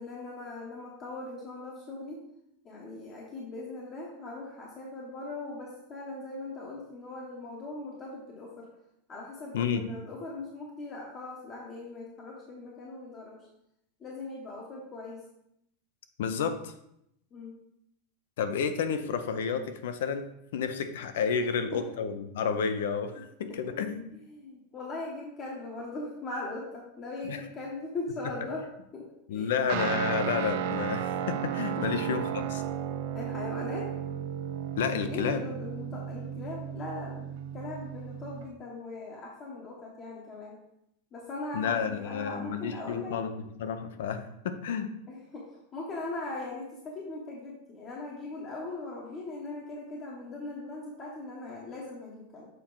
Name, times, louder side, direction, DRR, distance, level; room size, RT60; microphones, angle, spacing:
voice 1, 0.0-2.2 2.6-8.7 9.1-13.4 14.0-15.2 17.3-17.5 21.7-21.9 24.3-28.7 28.9-29.6 31.8-31.9 33.1-34.2 35.0-37.3 37.5-40.6 41.1-43.2 45.1-52.5, left 2 dB, 20° left, -3 dB, 0.9 m, -40 dB
voice 2, 9.5-9.9 16.2-16.7 18.4-20.2 20.5-24.1 27.2-27.4 29.3-32.6 34.8-35.4 41.5-44.9, left 6 dB, 70° left, 9 dB, 0.7 m, -31 dB
Guitar, 29.7-38.5, right 9 dB, 50° right, 0.4 m, -34 dB
6.8 x 4.3 x 3.8 m, 0.79 s
supercardioid pair, 170°, 0 cm